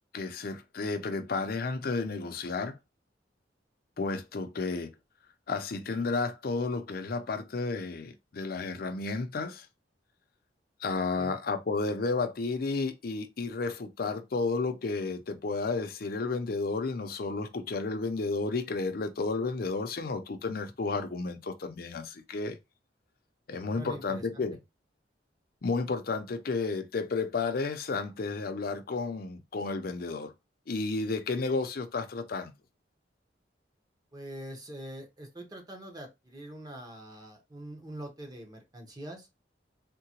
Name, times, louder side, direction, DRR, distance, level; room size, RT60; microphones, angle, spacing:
voice 1, 0.1-2.8 4.0-4.9 5.5-9.7 10.8-22.6 23.5-24.6 25.6-30.3 30.7-32.5, left 3 dB, 55° left, 0.5 m, -32 dB
voice 2, 23.7-24.4 34.1-39.3, right 1 dB, 20° right, 0.8 m, -44 dB
3.7 x 2.1 x 2.9 m
head